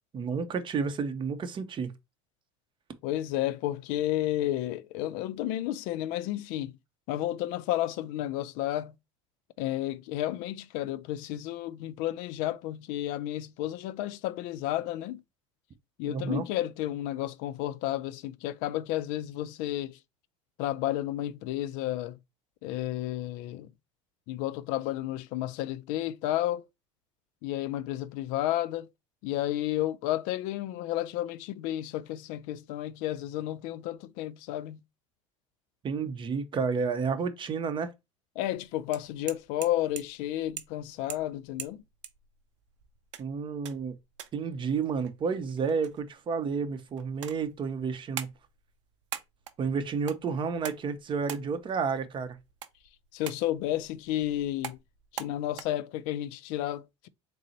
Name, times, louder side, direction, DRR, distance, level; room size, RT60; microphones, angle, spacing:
voice 1, 0.1-1.9 16.0-16.4 35.8-37.9 43.2-43.9 44.3-48.3 49.6-52.4, right 5 dB, 30° right, 0.7 m, -31 dB
voice 2, 3.0-6.7 7.1-8.9 9.6-15.2 16.0-19.9 20.6-22.2 22.6-23.7 24.3-26.6 27.4-28.9 29.2-34.8 38.4-41.8 53.1-54.8 55.1-57.1, left 13 dB, 60° left, 0.4 m, -32 dB
sound 1, 38.5-55.6, right 10 dB, 80° right, 0.5 m, -46 dB
3.8 x 2.0 x 4.2 m
hypercardioid pair, 80°, 15 cm